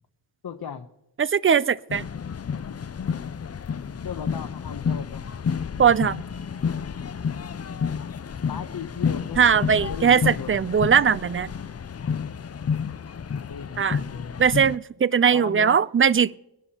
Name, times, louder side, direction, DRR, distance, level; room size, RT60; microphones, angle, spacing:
voice 1, 0.4-0.9 4.0-5.3 8.5-10.6 13.1-13.2 13.5-14.3 15.3-15.8, left 7 dB, 55° left, 0.9 m, -36 dB
voice 2, 1.2-2.0 5.8-6.2 9.4-11.5 13.8-14.0 14.4-16.4, right 7 dB, 30° right, 0.4 m, -20 dB
sound 1, 1.9-14.8, left 6 dB, 35° left, 0.5 m, -30 dB
24.0 x 11.0 x 2.9 m
wide cardioid pair, 90°, 45 cm